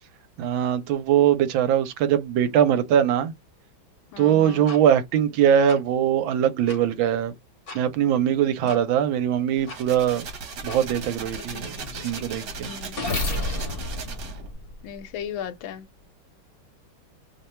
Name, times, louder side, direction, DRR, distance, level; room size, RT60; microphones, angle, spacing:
voice 1, 0.4-3.3 4.2-7.3 7.7-10.3 10.6-12.7, right 9 dB, 80° right, 1.4 m, -22 dB
voice 2, 4.1-4.7 8.6-8.7 11.5-11.7 12.7-13.0 14.8-15.9, left 8 dB, 90° left, 1.4 m, -36 dB
sound 1, 4.7-4.8 5.7-5.8 6.7-6.8 7.7-7.8 8.7-8.8 9.7-9.8 10.7-10.8 11.4-15.2, left 2 dB, 45° left, 0.7 m, -32 dB
fpphone-rollclose, 9.6-14.5, right 4 dB, 60° right, 1.4 m, -37 dB
3.3 x 2.2 x 4.2 m
omnidirectional pair, 2.2 m